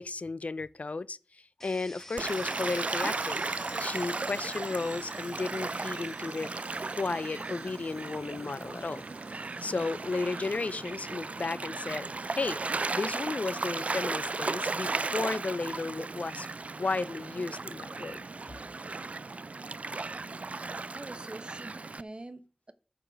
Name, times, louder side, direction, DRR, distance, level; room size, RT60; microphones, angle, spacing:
voice 1, 0.0-3.4 3.8-6.5 7.0-9.0 9.6-12.1 12.3-12.6 12.9-16.5 16.8-18.3, left 3 dB, 65° left, 0.4 m, -34 dB
sound 1, 1.6-15.3, left 1 dB, 15° left, 1.4 m, -54 dB
Gull seagull / Waves surf, 2.2-22.0, right 3 dB, 60° right, 0.3 m, -36 dB
voice 2, 20.9-22.7, right 2 dB, 40° right, 0.9 m, -45 dB
12.5 x 4.9 x 5.1 m
wide cardioid pair, 65°, 3 cm